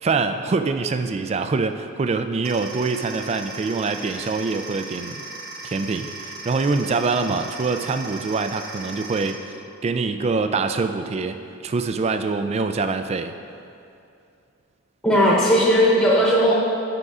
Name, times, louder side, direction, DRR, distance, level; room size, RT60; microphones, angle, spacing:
voice 1, 0.0-5.2 5.6-9.4 9.8-11.4 11.6-13.3, right 4 dB, 30° right, 9 dB, 0.3 m, -24 dB
sound 1, 2.4-9.3, right 3 dB, 50° right, 0.8 m, -37 dB
voice 2, 15.0-16.5, equal, 5° left, -7 dB, 0.9 m, -17 dB
7.8 x 5.9 x 4.8 m, 2.6 s
head